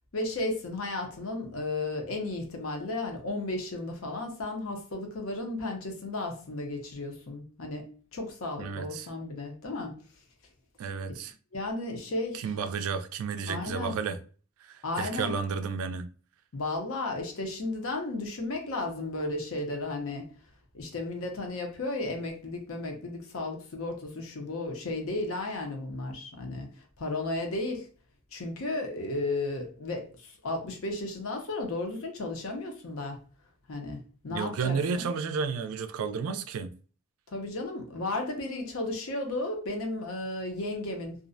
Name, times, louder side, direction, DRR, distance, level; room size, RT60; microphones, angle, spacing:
voice 1, 0.1-9.9 11.5-12.5 13.5-14.0 14.8-15.3 16.5-20.3 20.7-26.7 27.0-27.9 28.3-33.2 33.7-34.0 34.2-35.1 37.3-41.2, left 2 dB, 70° left, 0.6 m, -34 dB
voice 2, 8.6-9.1 10.8-11.3 12.3-14.2 14.6-16.1 34.3-36.7, right 5 dB, 75° right, 0.3 m, -32 dB
2.5 x 2.0 x 2.5 m
head